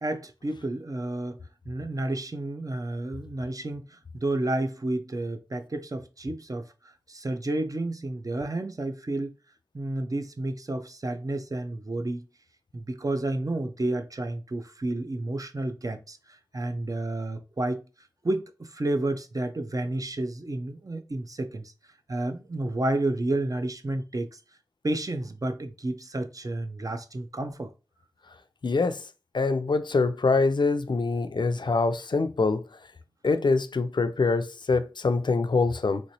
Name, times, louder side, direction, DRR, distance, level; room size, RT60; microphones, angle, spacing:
voice 1, 0.0-1.4 1.7-6.7 7.1-9.3 9.7-12.2 12.7-16.2 16.5-17.8 18.2-21.7 22.1-24.4 24.8-27.7, right 2 dB, 45° right, 0.5 m, -31 dB
voice 2, 28.6-29.0 29.3-32.6 33.2-36.0, left 3 dB, 65° left, 0.4 m, -24 dB
3.2 x 3.0 x 2.6 m
wide cardioid pair, 55°, 8 cm